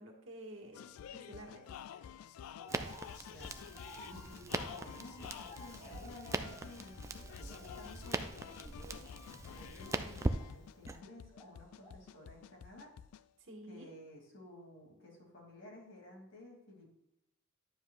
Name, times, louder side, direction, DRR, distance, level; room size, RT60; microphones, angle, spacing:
voice 1, 0.0-1.6 13.4-13.9, right 1 dB, 60° right, 1 dB, 1.6 m, -50 dB
sound 1, 0.7-13.3, left 9 dB, 85° left, 0.3 m, -50 dB
sound 2, 1.6-1.9 2.5-6.9 7.2-7.9 8.4-8.6 9.4-11.1 11.3-12.1, equal, 25° left, 2.5 m, -56 dB
Crackle, 2.7-11.0, right 2 dB, 15° right, 0.3 m, -41 dB
voice 2, 3.2-3.6 4.0-9.0 9.5-12.9 13.6-16.9, left 1 dB, 60° left, -1 dB, 2.6 m, -54 dB
11.0 x 7.4 x 2.4 m, 0.85 s
head